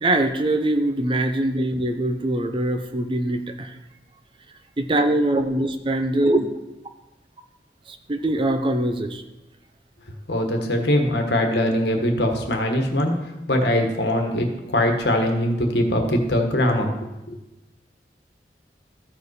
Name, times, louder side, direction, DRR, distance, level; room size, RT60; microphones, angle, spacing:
voice 1, 0.0-3.7 4.8-6.5 7.9-9.2, right 1 dB, 30° right, 7 dB, 0.6 m, -23 dB
voice 2, 10.3-17.4, left 1 dB, 70° left, 3 dB, 1.4 m, -22 dB
14.0 x 5.0 x 4.8 m, 0.98 s
head